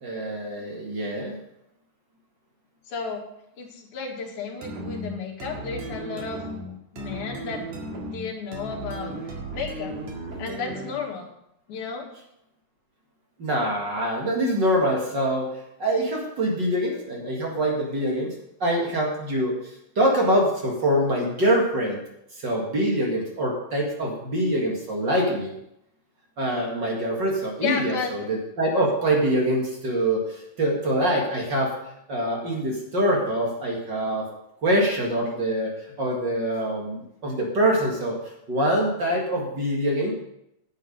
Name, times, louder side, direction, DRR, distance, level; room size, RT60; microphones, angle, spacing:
voice 1, 0.0-1.4 13.4-15.5 15.8-18.3 18.6-19.6 20.0-22.0 22.4-25.5 26.4-31.7 32.1-34.3 34.6-35.7 36.0-38.2 38.5-40.1, right 1 dB, 40° right, -1 dB, 2.3 m, -24 dB
voice 2, 2.9-3.2 3.6-7.7 8.1-9.2 9.5-9.9 10.4-11.3 11.7-12.1 27.6-28.1, left 5 dB, 80° left, 1 dB, 3.1 m, -32 dB
sound 1, 4.6-11.1, right 1 dB, 70° right, 3.1 m, -35 dB
10.5 x 8.0 x 5.3 m, 0.80 s
omnidirectional pair, 3.4 m